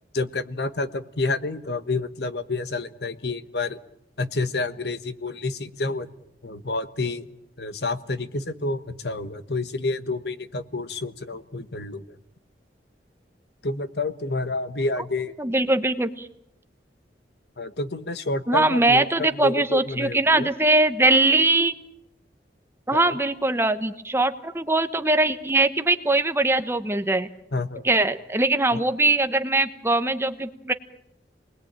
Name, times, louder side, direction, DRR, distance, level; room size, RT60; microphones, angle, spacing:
voice 1, 0.1-3.8 4.2-6.1 6.4-7.3 7.6-12.2 13.6-15.4 17.6-20.5 22.9-23.2 27.5-27.8 28.7-28.8, left 2 dB, 70° left, 12 dB, 1.3 m, -29 dB
voice 2, 15.4-16.3 18.5-21.7 22.9-27.3 27.8-30.7, right 2 dB, 15° right, 10 dB, 1.1 m, -21 dB
28.0 x 20.5 x 8.9 m, 0.80 s
head